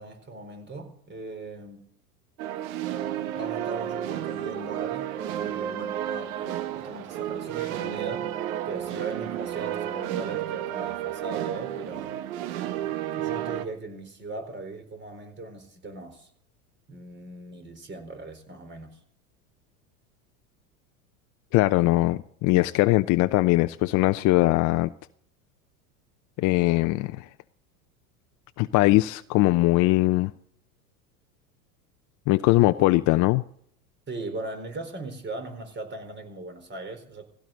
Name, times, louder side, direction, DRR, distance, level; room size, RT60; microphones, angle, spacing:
voice 1, 0.0-1.8 3.3-8.4 8.7-12.1 13.1-16.3 16.9-19.0 34.1-37.2, right 2 dB, 25° right, 4.3 m, -39 dB
sound 1, 2.4-13.6, right 12 dB, 65° right, 1.4 m, -32 dB
voice 2, 21.5-24.9 26.4-27.3 28.6-30.3 32.3-33.4, left 19 dB, 40° left, 0.7 m, -21 dB
19.0 x 16.5 x 3.9 m
hypercardioid pair, 85°, 45 cm